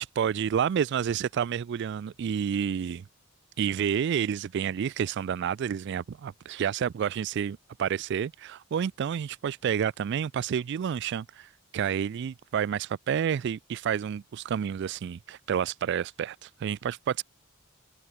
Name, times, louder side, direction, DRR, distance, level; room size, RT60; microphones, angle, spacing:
voice 1, 0.0-3.0 3.6-17.2, right 8 dB, 55° right, 0.3 m, -29 dB
head